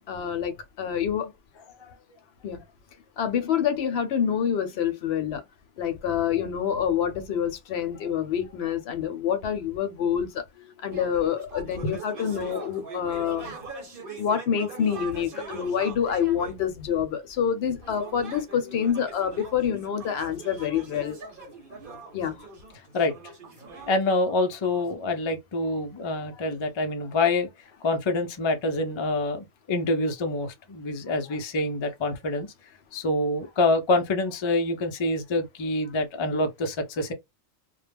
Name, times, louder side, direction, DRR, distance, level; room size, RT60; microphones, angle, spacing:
voice 1, 0.1-1.3 2.4-2.6 3.2-5.4 5.8-10.4 10.8-13.5 14.2-21.2 22.1-22.5, left 8 dB, 70° left, 0.8 m, -27 dB
sound 1, 10.9-16.6 17.8-24.9, right 4 dB, 55° right, 1.0 m, -42 dB
voice 2, 22.9-23.3 23.9-27.5 27.8-32.5 32.9-37.1, left 2 dB, 50° left, 0.3 m, -26 dB
2.2 x 2.0 x 3.3 m
omnidirectional pair, 1.2 m